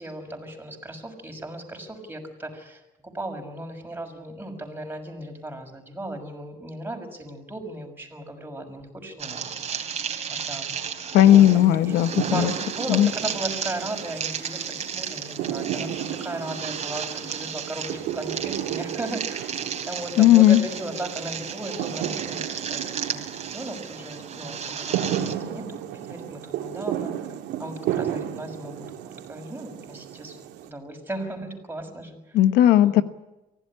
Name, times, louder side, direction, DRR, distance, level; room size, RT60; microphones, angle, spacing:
voice 1, 0.0-9.5 10.3-10.7 11.2-12.0 12.3-19.6 19.9-27.3 27.6-30.4 30.6-32.4 32.8-33.0, right 1 dB, 10° right, 3 dB, 6.2 m, -36 dB
sound 1, 9.2-25.3, right 7 dB, 40° right, 3.4 m, -34 dB
voice 2, 11.1-12.5 12.9-13.1 20.2-20.6 32.3-33.0, left 12 dB, 85° left, 12 dB, 1.2 m, -16 dB
sound 2, 11.2-30.7, right 10 dB, 90° right, 2.7 m, -34 dB
24.5 x 16.5 x 9.9 m, 0.99 s
cardioid pair, 110°, 17 cm